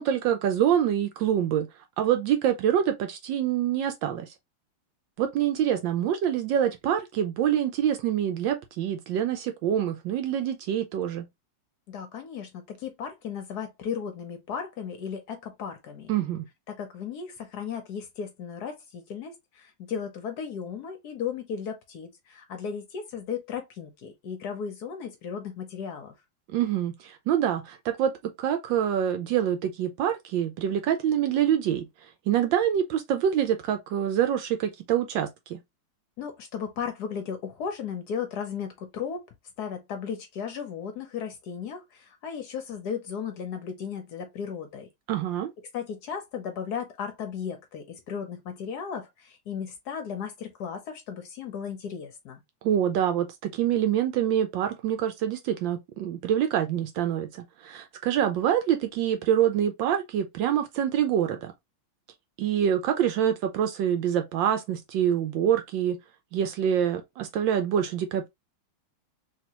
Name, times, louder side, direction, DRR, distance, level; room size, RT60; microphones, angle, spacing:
voice 1, 0.0-1.7 2.0-4.3 5.2-11.2 16.1-16.5 26.5-28.1 28.4-35.6 45.1-45.5 52.6-61.5 62.4-66.0 66.3-68.3, right 10 dB, 75° right, 1.2 m, -26 dB
voice 2, 11.9-16.1 16.7-26.1 36.2-39.2 39.6-44.9 45.7-52.4, left 7 dB, 65° left, 1.1 m, -35 dB
3.3 x 2.9 x 2.9 m
omnidirectional pair, 2.3 m